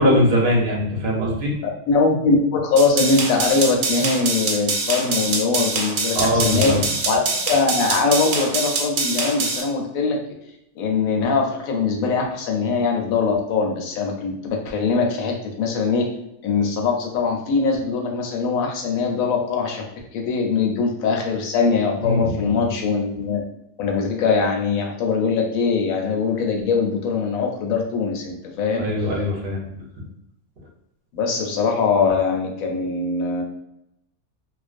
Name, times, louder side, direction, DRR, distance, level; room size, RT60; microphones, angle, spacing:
voice 1, 0.0-1.6 6.1-6.8 22.0-22.7 28.8-29.6, left 1 dB, 50° right, -2 dB, 0.7 m, -21 dB
voice 2, 1.6-6.7 7.1-7.2 7.5-10.2 10.8-16.1 16.4-19.8 20.1-23.4 23.8-28.8 31.1-33.4, left 4 dB, 75° left, 2 dB, 1.0 m, -22 dB
sound 1, 2.8-9.6, right 4 dB, 75° right, 1.0 m, -24 dB
2.4 x 2.1 x 2.4 m, 0.82 s
omnidirectional pair, 1.5 m